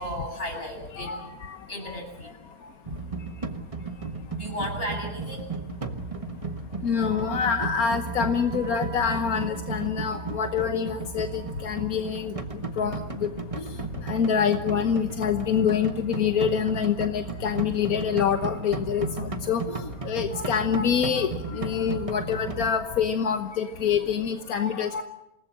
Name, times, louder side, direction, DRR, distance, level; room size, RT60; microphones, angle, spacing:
voice 1, 0.0-1.2 1.7-2.3 4.3-5.4, equal, 40° left, 1 dB, 8.3 m, -34 dB
voice 2, 0.9-1.6 1.9-2.0 6.8-12.3 12.8-13.3 14.0-25.0, left 7 dB, 85° left, 7 dB, 1.6 m, -26 dB
sound 1, 2.9-22.7, right 3 dB, 25° right, 1.4 m, -34 dB
27.5 x 19.0 x 7.5 m, 0.91 s
omnidirectional pair, 1.5 m